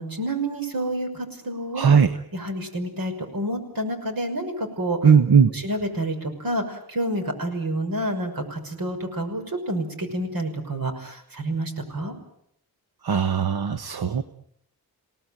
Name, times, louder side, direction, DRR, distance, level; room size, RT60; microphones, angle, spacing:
voice 1, 0.0-2.0 2.3-5.0 5.5-12.1, right 1 dB, 65° right, 5 dB, 6.1 m, -29 dB
voice 2, 1.7-2.2 5.0-5.5 13.0-14.2, right 6 dB, 85° right, 9 dB, 1.4 m, -18 dB
28.5 x 18.5 x 9.1 m, 0.73 s
wide cardioid pair, 105°, 37 cm